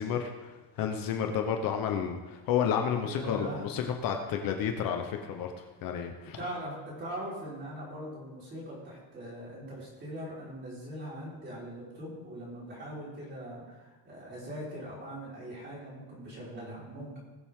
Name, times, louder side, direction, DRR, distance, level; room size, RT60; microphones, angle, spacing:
voice 1, 0.0-5.5 5.8-6.4, left 8 dB, 50° left, 4 dB, 1.1 m, -31 dB
voice 2, 3.0-3.6 6.3-17.2, right 1 dB, 25° right, -6 dB, 4.8 m, -41 dB
20.0 x 7.5 x 3.8 m, 1.2 s
cardioid pair, 175°, 43 cm